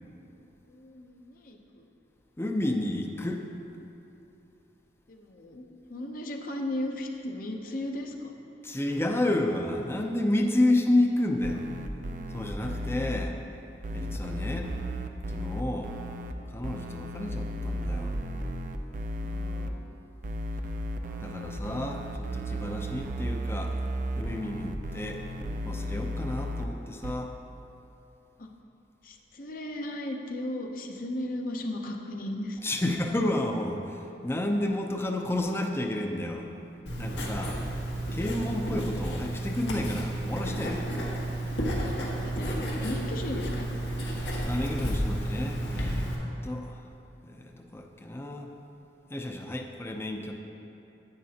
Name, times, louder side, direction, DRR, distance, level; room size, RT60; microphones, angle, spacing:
voice 1, 0.7-1.9 5.1-8.3 19.2-19.9 28.4-28.5 29.0-32.6 42.2-43.7, left 1 dB, 50° left, 2 dB, 0.7 m, -36 dB
voice 2, 2.4-3.4 8.6-11.6 12.3-13.4 13.9-14.7 15.3-15.9 16.5-18.1 21.2-23.7 24.2-25.2 25.6-27.3 32.6-33.8 34.2-36.5 37.0-37.6 38.1-41.1 44.4-46.1 46.4-46.7 47.2-48.5 49.1-50.3, left 1 dB, 15° left, 2 dB, 0.5 m, -30 dB
sound 1, 11.4-13.2 13.8-16.3 16.6-19.7 20.2-26.6 27.0-27.1, equal, 45° right, 0.4 m, -34 dB
Writing, 36.9-46.2, right 1 dB, 90° left, 1.5 m, -31 dB
10.5 x 8.6 x 2.8 m, 2.8 s
head